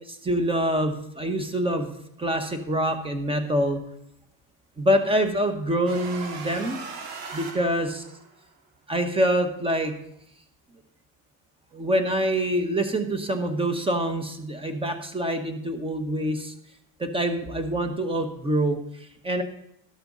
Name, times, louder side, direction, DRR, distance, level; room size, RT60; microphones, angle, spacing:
voice 1, 0.1-1.9 2.2-3.8 4.8-6.8 7.3-8.0 8.9-9.9 11.7-16.5 17.0-19.4, right 1 dB, 10° right, 7 dB, 1.3 m, -25 dB
sound 1, 5.9-8.4, right 4 dB, 55° right, 2.8 m, -39 dB
13.0 x 12.5 x 4.1 m, 0.71 s
cardioid pair, 170°, 44 cm